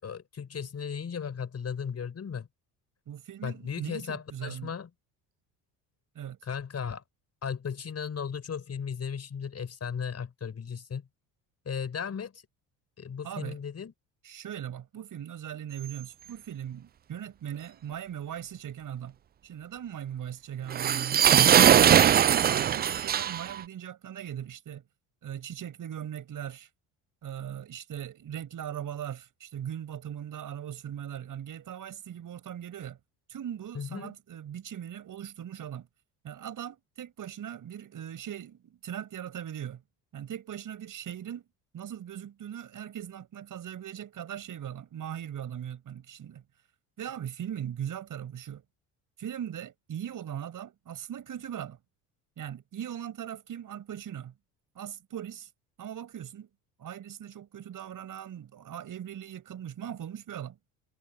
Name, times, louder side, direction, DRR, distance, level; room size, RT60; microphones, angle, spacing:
voice 1, 0.0-2.5 3.4-4.9 6.4-7.0 7.4-11.0 11.6-12.4 13.0-13.9 33.7-34.1, left 7 dB, 40° left, 6.4 m, -36 dB
voice 2, 3.1-4.7 6.1-6.4 13.2-13.6 14.2-19.2 19.4-21.3 21.7-24.8 25.2-26.7 27.2-33.0 33.3-35.9 36.2-39.8 40.1-41.4 41.7-46.4 47.0-48.6 49.2-51.8 52.4-54.3 54.7-55.5 55.8-56.5 56.8-60.6, right 10 dB, 50° right, 6.2 m, -39 dB
sound 1, 20.7-23.6, right 10 dB, 25° right, 0.4 m, -20 dB
supercardioid pair, 80°, 40 cm